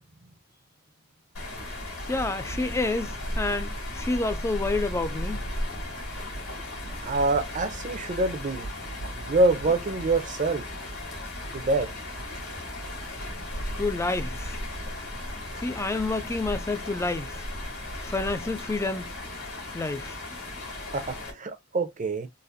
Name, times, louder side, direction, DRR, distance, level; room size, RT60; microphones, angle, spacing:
sound 1, 1.3-21.3, left 1 dB, 75° left, 2.1 m, -35 dB
voice 1, 2.1-5.4 13.8-14.6 15.6-17.5 18.0-19.1 19.7-20.2, left 3 dB, 10° left, 0.3 m, -29 dB
voice 2, 7.0-8.7 9.3-10.6 11.5-11.9 20.9-22.3, right 2 dB, 35° right, 0.6 m, -25 dB
4.0 x 2.5 x 2.5 m
head